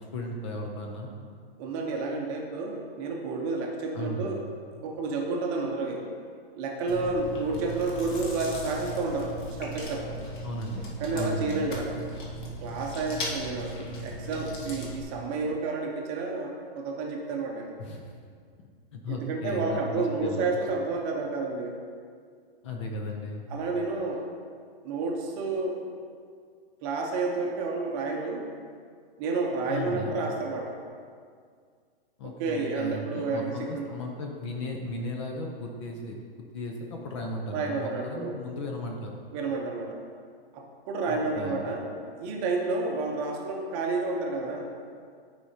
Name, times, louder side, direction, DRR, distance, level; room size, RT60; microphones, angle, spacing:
voice 1, 0.1-1.1 3.9-4.3 7.5-7.6 10.4-11.7 17.8-18.2 18.9-20.5 22.6-23.4 29.7-30.2 32.2-39.2 41.1-41.6, left 1 dB, 30° left, 1 dB, 0.6 m, -36 dB
voice 2, 1.6-4.4 4.8-6.1 6.5-10.2 11.0-12.0 12.6-13.7 14.0-17.7 19.1-21.8 23.5-24.3 24.8-25.8 26.8-28.4 29.2-30.8 32.2-33.9 37.5-38.4 39.3-40.0 40.5-41.9 42.2-44.7, right 3 dB, 25° right, 0 dB, 0.8 m, -30 dB
Chewing mastication, 6.9-15.0, equal, 50° left, 1.6 m, -37 dB
12.5 x 4.9 x 2.8 m, 2.1 s
hypercardioid pair, 160°, 30 cm